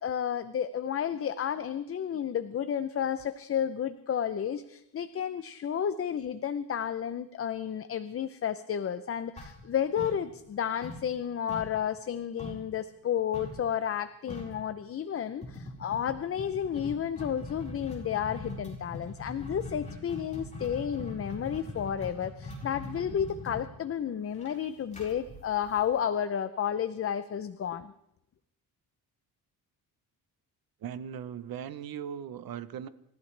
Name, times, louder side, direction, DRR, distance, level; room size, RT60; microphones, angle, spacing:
voice 1, 0.0-27.9, left 8 dB, 35° left, 11 dB, 0.6 m, -32 dB
sound 1, 9.4-10.6 10.8-12.7 13.3-13.6 13.9-14.0 14.3-14.6 15.4-26.2, left 2 dB, 20° left, 4.4 m, -42 dB
voice 2, 30.8-32.9, right 8 dB, 65° right, 14 dB, 0.9 m, -38 dB
28.0 x 14.5 x 3.3 m, 0.79 s
cardioid pair, 150°, 38 cm